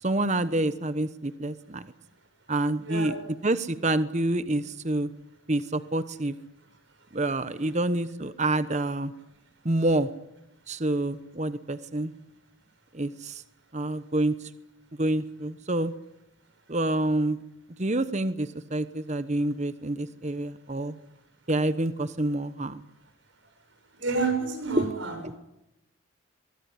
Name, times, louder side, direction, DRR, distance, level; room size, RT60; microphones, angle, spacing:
voice 1, 0.0-1.9 2.5-3.2 3.4-5.1 5.5-6.3 7.1-9.1 9.6-10.1 10.7-12.1 12.9-13.4 13.7-14.5 15.0-15.9 16.7-17.4 17.8-21.0 21.5-22.9 24.8-24.9 25.2-25.3, right 1 dB, 35° right, 13 dB, 1.0 m, -27 dB
voice 2, 2.9-3.2 7.5-7.7 24.0-25.1, right 4 dB, 60° right, 6 dB, 7.1 m, -29 dB
23.5 x 21.5 x 9.8 m, 0.90 s
head